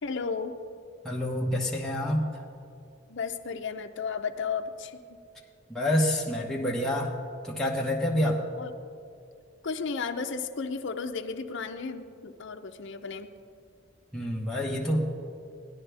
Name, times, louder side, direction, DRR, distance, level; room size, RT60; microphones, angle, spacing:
voice 1, 0.0-0.6 3.1-5.2 8.6-8.7 9.6-13.3, left 5 dB, 55° left, 6 dB, 0.6 m, -34 dB
voice 2, 1.0-2.2 5.7-7.1 7.4-8.4 14.1-15.0, left 1 dB, 5° left, -4 dB, 0.9 m, -27 dB
18.0 x 10.5 x 3.4 m, 2.4 s
head